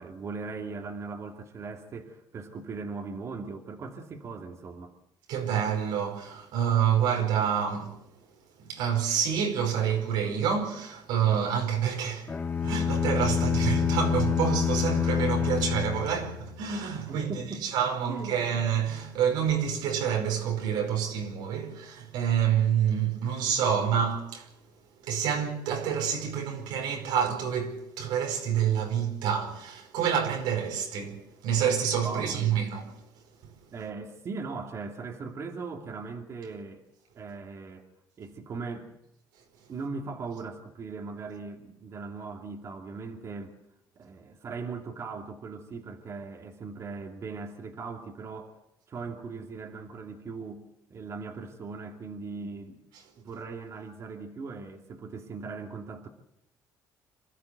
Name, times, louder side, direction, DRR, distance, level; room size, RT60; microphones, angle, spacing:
voice 1, 0.0-4.9 17.1-17.7 18.1-18.4 32.0-32.4 33.7-36.8 37.2-37.8 38.2-38.9 39.7-43.6 44.0-48.6 48.9-50.6 50.9-52.8 53.2-56.1, right 4 dB, 40° right, 2.5 m, -39 dB
voice 2, 5.3-7.9 8.6-12.3 12.6-24.5 25.0-32.9, right 8 dB, 90° right, 4.9 m, -28 dB
sound 1, 12.3-16.7, left 8 dB, 30° left, 2.4 m, -27 dB
26.5 x 13.5 x 8.2 m
cardioid pair, 120°, 7 cm